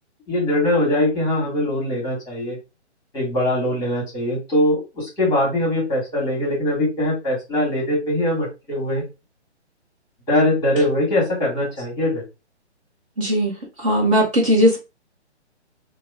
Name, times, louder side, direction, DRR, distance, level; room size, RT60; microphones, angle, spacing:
voice 1, 0.3-2.6 3.1-9.0 10.3-12.2, left 1 dB, 10° left, -3 dB, 1.3 m, -21 dB
voice 2, 13.2-14.8, equal, 30° right, -3 dB, 0.8 m, -18 dB
2.8 x 2.1 x 3.4 m, 0.26 s
hypercardioid pair, 145°, 35 cm